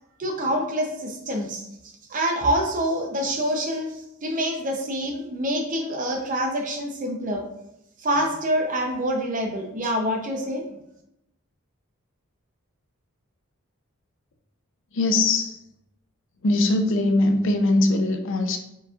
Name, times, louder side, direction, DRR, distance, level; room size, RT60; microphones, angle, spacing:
voice 1, 0.2-1.7 2.1-7.5 8.0-10.6, equal, 35° right, 3 dB, 0.6 m, -26 dB
voice 2, 14.9-15.6 16.4-18.6, left 2 dB, 60° left, 6 dB, 0.5 m, -21 dB
4.8 x 4.0 x 2.4 m, 0.83 s
head